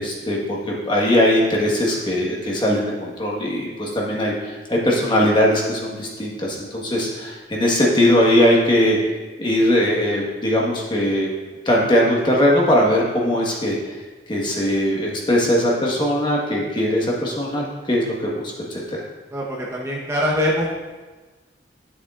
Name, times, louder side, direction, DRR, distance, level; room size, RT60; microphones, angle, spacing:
voice 1, 0.0-9.0 9.4-11.3 11.6-13.8 14.3-19.0, equal, 25° left, -3 dB, 1.4 m, -20 dB
voice 2, 19.3-20.7, equal, 15° right, -4 dB, 1.0 m, -23 dB
11.0 x 7.2 x 2.5 m, 1.3 s
head